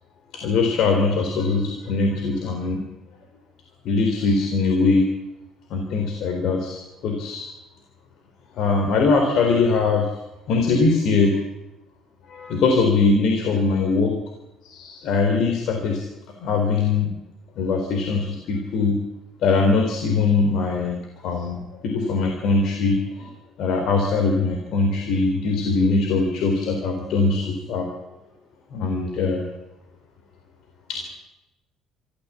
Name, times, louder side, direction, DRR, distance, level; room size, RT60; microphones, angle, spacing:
voice 1, 0.4-2.8 3.8-5.0 5.7-7.5 8.6-10.1 10.5-11.4 12.3-14.1 14.6-16.0 16.4-17.1 17.6-19.0 19.4-23.3 23.6-27.9 28.7-29.4 30.9-31.1, left 4 dB, 70° left, 4 dB, 4.0 m, -21 dB
24.5 x 15.0 x 8.6 m, 0.95 s
supercardioid pair, 85°, 0 cm